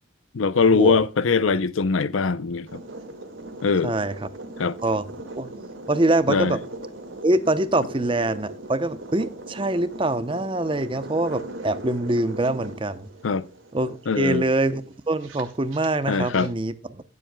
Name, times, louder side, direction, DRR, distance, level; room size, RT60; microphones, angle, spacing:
voice 1, 0.3-2.8 3.6-3.9 4.6-4.8 6.3-6.6 13.2-13.4 14.1-14.5 16.1-16.5, left 4 dB, 80° left, 0.6 m, -22 dB
sound 1, 2.7-16.5, right 1 dB, 80° right, 2.0 m, -39 dB
voice 2, 3.8-4.1 4.8-5.0 5.4-5.5 5.9-6.6 7.2-13.1 13.7-17.0, right 2 dB, 25° right, 0.7 m, -24 dB
19.0 x 7.6 x 2.2 m
head